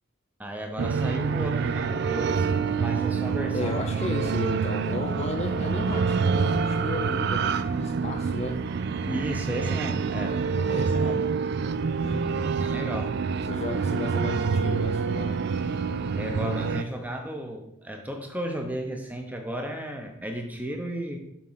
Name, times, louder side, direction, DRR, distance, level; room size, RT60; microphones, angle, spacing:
voice 1, 0.4-3.9 9.1-11.3 12.4-13.2 16.2-21.2, equal, 5° right, 3 dB, 0.8 m, -34 dB
sound 1, 0.8-16.8, right 5 dB, 50° right, 0.3 m, -27 dB
voice 2, 3.5-8.7 12.0-12.5 13.4-15.5, left 3 dB, 30° left, 6 dB, 0.3 m, -34 dB
7.3 x 3.8 x 5.6 m, 0.78 s
head